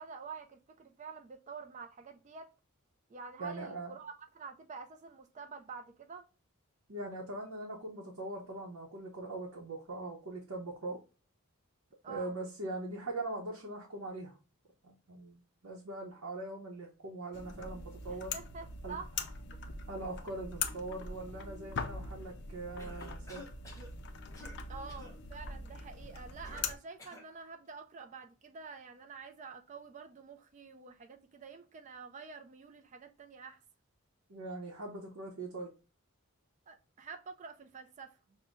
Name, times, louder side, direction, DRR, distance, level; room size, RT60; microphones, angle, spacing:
voice 1, 0.0-2.5 3.1-6.3 12.0-12.3 18.1-19.1 24.7-33.6 36.7-38.2, right 5 dB, 35° right, 0.3 m, -48 dB
voice 2, 3.4-3.9 6.9-11.0 12.1-14.3 14.8-18.3 18.8-19.0 19.9-23.4 34.3-35.7, right 2 dB, 70° right, 0.8 m, -41 dB
sound 1, 17.3-26.7, left 4 dB, 50° left, 0.4 m, -42 dB
Cough, 22.8-23.9 24.3-24.6 24.9-25.2 26.4-27.3, left 1 dB, 15° left, 0.8 m, -51 dB
6.1 x 2.1 x 2.5 m
head